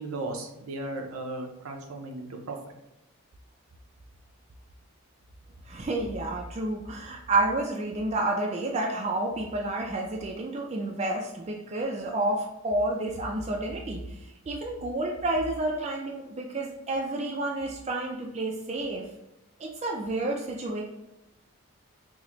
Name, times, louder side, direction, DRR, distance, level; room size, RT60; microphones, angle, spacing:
voice 1, 0.0-2.6, right 2 dB, 75° right, 2 dB, 0.6 m, -36 dB
voice 2, 5.7-14.2 14.5-19.1 19.6-20.8, right 2 dB, 30° right, 0 dB, 0.3 m, -30 dB
3.9 x 2.1 x 2.9 m, 0.91 s
head